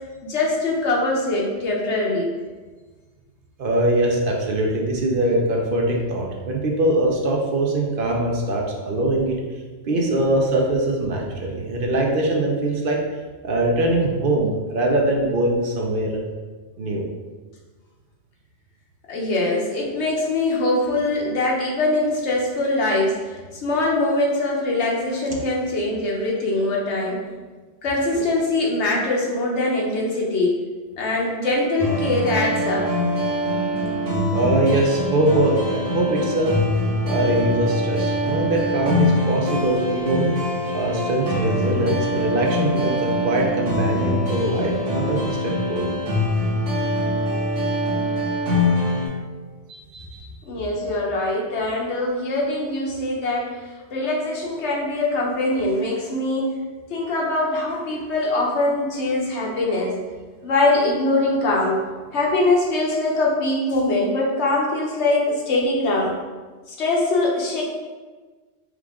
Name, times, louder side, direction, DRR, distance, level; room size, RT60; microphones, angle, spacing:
voice 1, 0.2-2.3 19.1-27.2 27.8-30.5 31.0-32.9 50.4-53.6 53.9-56.6 56.9-60.0 60.4-61.8 62.1-66.2 66.7-67.6, left 2 dB, 75° left, -2 dB, 1.1 m, -22 dB
voice 2, 3.6-9.4 9.8-13.0 13.4-16.2 16.8-17.1 34.3-36.6 37.1-40.4 40.7-45.9 49.7-50.3, right 1 dB, 55° right, -1 dB, 0.7 m, -22 dB
sound 1, 31.8-49.1, left 1 dB, 85° right, 1.4 m, -24 dB
4.8 x 2.4 x 3.5 m, 1.4 s
omnidirectional pair, 1.2 m